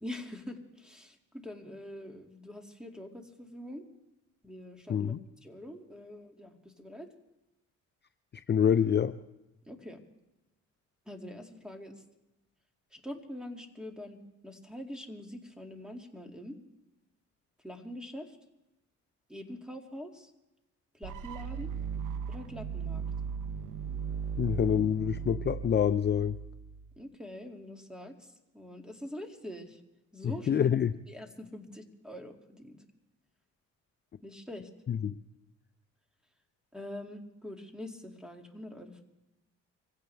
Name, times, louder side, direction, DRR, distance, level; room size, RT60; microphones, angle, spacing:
voice 1, 0.0-3.8 4.4-5.1 5.4-7.1 9.7-10.0 11.1-11.9 12.9-14.2 14.4-16.6 17.6-18.3 19.3-20.3 21.0-21.7 22.3-23.0 27.0-28.1 28.5-29.8 30.1-30.7 31.1-32.8 34.2-34.7 36.7-39.0, left 1 dB, ahead, 3 dB, 2.4 m, -44 dB
voice 2, 4.9-5.2 8.5-9.1 24.4-26.4 30.2-30.9 34.9-35.2, left 8 dB, 35° left, 10 dB, 0.5 m, -26 dB
sound 1, 21.0-27.0, right 7 dB, 85° right, 1.0 m, -37 dB
25.0 x 16.0 x 3.4 m, 0.98 s
cardioid pair, 90°, 30 cm